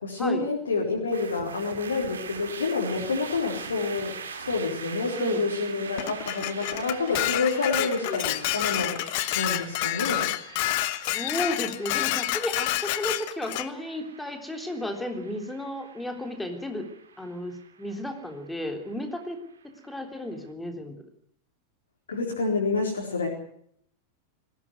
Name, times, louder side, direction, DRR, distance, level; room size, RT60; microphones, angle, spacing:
voice 1, 0.0-9.0 9.3-10.3 22.1-23.3, left 3 dB, 70° left, -1 dB, 4.3 m, -28 dB
sound 1, 1.1-20.3, right 6 dB, 70° right, 2.6 m, -43 dB
voice 2, 5.1-5.4 7.7-8.2 11.1-16.9 17.2-19.4 19.6-21.0, left 1 dB, 5° left, 4 dB, 3.6 m, -33 dB
Dishes pots and pans, 6.0-13.7, left 16 dB, 50° left, 1.1 m, -29 dB
20.0 x 17.5 x 9.5 m, 0.67 s
figure-of-eight pair, 90°, 0 cm